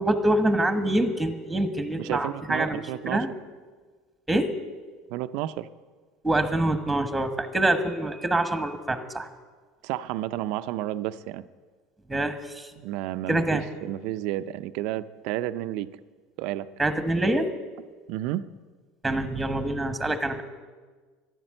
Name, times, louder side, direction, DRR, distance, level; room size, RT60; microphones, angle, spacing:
voice 1, 0.0-3.3 4.3-4.5 6.2-9.3 12.1-12.7 13.3-13.6 16.8-17.5 19.0-20.4, right 1 dB, 5° right, 8 dB, 1.3 m, -25 dB
voice 2, 2.0-3.3 5.1-5.7 9.8-11.5 12.8-15.9 16.4-16.7 18.1-18.5, right 14 dB, 70° right, 12 dB, 0.5 m, -31 dB
12.5 x 11.0 x 7.8 m, 1.4 s
supercardioid pair, 105°, 0 cm